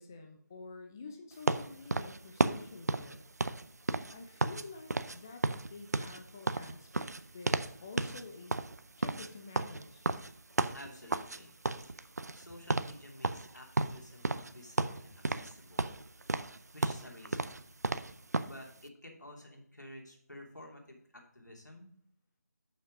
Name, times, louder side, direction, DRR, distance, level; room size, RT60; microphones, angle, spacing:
voice 1, 0.0-3.2 4.1-5.4 5.7-7.5 7.8-8.6 9.0-10.1, left 3 dB, 10° left, 4 dB, 0.3 m, -49 dB
sound 1, 1.5-4.6 4.9-5.2 5.4-7.7 8.0-8.2 8.5-11.4 11.6-12.4 12.7-12.9 13.2-14.5 14.8-15.5 15.8-18.6, right 3 dB, 65° right, 0.6 m, -32 dB
voice 2, 10.7-11.6 12.3-15.9 16.7-17.6 18.4-21.9, left 1 dB, 80° left, 0 dB, 2.8 m, -51 dB
6.9 x 5.7 x 5.1 m, 0.65 s
figure-of-eight pair, 155°, 9 cm